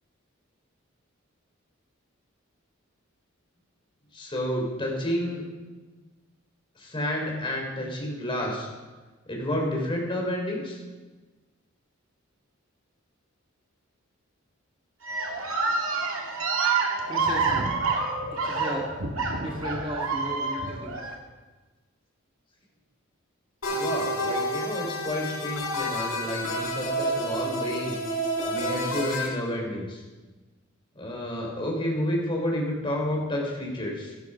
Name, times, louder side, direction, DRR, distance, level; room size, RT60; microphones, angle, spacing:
voice 1, 4.1-5.4 6.8-8.7 9.3-10.8 23.7-28.0 28.5-30.0 31.0-34.1, left 1 dB, 25° left, -1 dB, 3.7 m, -30 dB
sound 1, 15.0-21.1, right 4 dB, 80° right, 2.1 m, -28 dB
voice 2, 17.1-17.7 18.3-18.9 19.4-21.1, right 1 dB, 25° right, -1 dB, 1.8 m, -35 dB
sound 2, 23.6-29.3, equal, 80° left, 4.6 m, -29 dB
14.0 x 12.5 x 5.7 m, 1.3 s
head